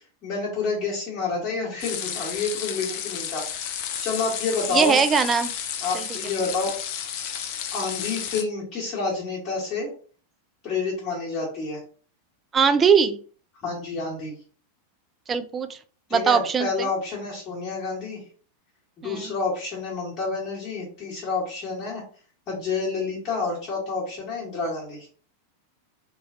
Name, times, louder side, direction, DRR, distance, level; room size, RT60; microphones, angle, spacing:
voice 1, 0.2-5.0 5.8-6.8 7.7-9.9 10.6-11.8 13.6-14.3 16.1-18.2 19.0-22.0 22.5-25.1, left 4 dB, 30° left, -6 dB, 1.2 m, -29 dB
sound 1, 1.8-8.4, left 9 dB, 45° left, 0.4 m, -32 dB
voice 2, 4.7-5.5 5.9-6.1 12.5-13.2 15.3-15.8 16.1-16.9 19.0-19.3, right 6 dB, 20° right, 10 dB, 0.3 m, -21 dB
3.1 x 2.4 x 2.5 m, 0.42 s
figure-of-eight pair, 90°, 0 cm